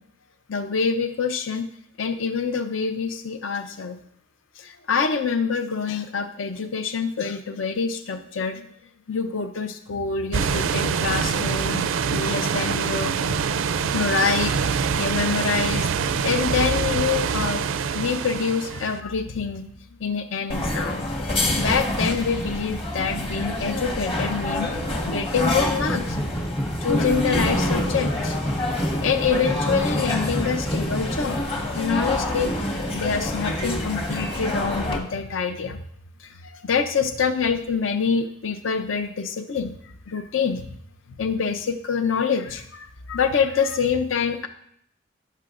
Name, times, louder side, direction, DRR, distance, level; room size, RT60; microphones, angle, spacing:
voice 1, 0.5-1.7 2.0-4.0 4.6-8.6 9.1-11.8 12.1-13.4 13.8-17.6 17.9-19.6 20.0-21.1 21.5-26.2 26.8-28.4 29.0-32.5 32.9-35.8 36.4-39.7 40.1-40.7 41.2-44.5, left 5 dB, 70° left, 8 dB, 0.6 m, -26 dB
sound 1, 10.3-19.0, right 6 dB, 75° right, 0.4 m, -25 dB
sound 2, 20.5-35.0, left 1 dB, 30° left, 1.3 m, -27 dB
sound 3, 25.7-31.4, equal, 10° left, 0.4 m, -29 dB
16.5 x 5.7 x 2.5 m, 0.69 s
head